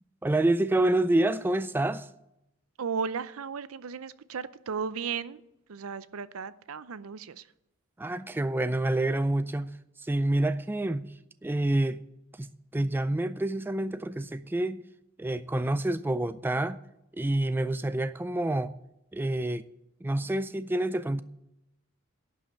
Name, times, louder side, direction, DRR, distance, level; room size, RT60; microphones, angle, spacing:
voice 1, 0.2-2.1 8.0-11.1 11.4-12.0 12.4-14.8 15.2-16.8 17.1-18.7 19.1-19.6 20.0-21.2, right 1 dB, 10° right, 0.3 m, -28 dB
voice 2, 2.8-5.4 5.7-7.5, right 6 dB, 80° right, 0.6 m, -35 dB
11.5 x 5.6 x 8.7 m
head